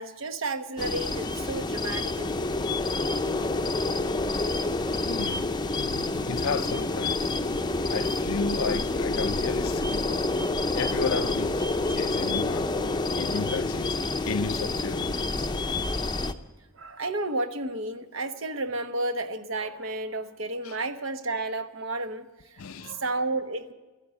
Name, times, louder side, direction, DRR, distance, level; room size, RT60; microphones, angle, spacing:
voice 1, 0.0-2.5 16.7-22.3 22.8-23.7, right 2 dB, 65° right, 1.2 m, -32 dB
sound 1, 0.8-16.3, left 2 dB, 20° left, 0.6 m, -28 dB
voice 2, 5.0-7.3 7.9-10.5 10.7-12.7 13.1-14.0 14.2-15.5 20.6-20.8 22.6-23.0, left 5 dB, 85° left, 0.6 m, -33 dB
14.0 x 11.5 x 8.3 m
head